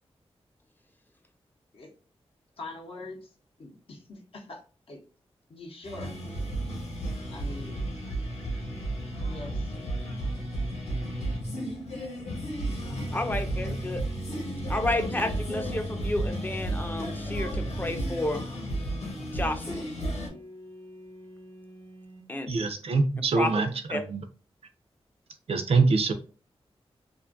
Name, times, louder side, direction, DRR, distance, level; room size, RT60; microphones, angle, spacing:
voice 1, 2.6-3.3 3.6-5.0 5.5-6.2 7.3-7.8 9.2-9.7, left 2 dB, 60° left, 0 dB, 0.6 m, -43 dB
sound 1, 5.8-20.3, right 1 dB, 85° left, 0.9 m, -33 dB
sound 2, 12.8-14.1 14.8-16.9 17.5-19.5 20.3-22.3, equal, 40° left, 0.9 m, -41 dB
voice 2, 13.1-14.0 14.7-18.4 19.3-19.9 22.3-22.5 23.4-23.5 23.9-24.0, left 1 dB, 20° left, 7 dB, 0.4 m, -31 dB
voice 3, 22.5-24.2 25.5-26.1, right 3 dB, 65° right, 8 dB, 0.4 m, -24 dB
2.5 x 2.3 x 2.4 m, 0.37 s
wide cardioid pair, 90°, 11 cm